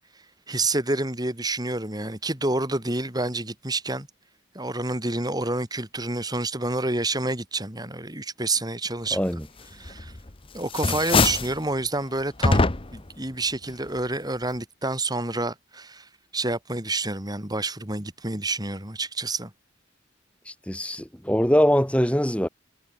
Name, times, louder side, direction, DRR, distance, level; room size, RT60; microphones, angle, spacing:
voice 1, 0.5-4.1 4.5-9.2 9.8-10.1 10.5-12.6 12.9-16.1 16.3-19.5, right 2 dB, 20° right, 5.7 m, -28 dB
voice 2, 9.1-9.4 20.4-22.5, equal, 5° left, 2.9 m, -22 dB
sound 1, 9.9-10.3 10.6-11.6 12.4-13.1, left 3 dB, 25° left, 1.0 m, -22 dB
head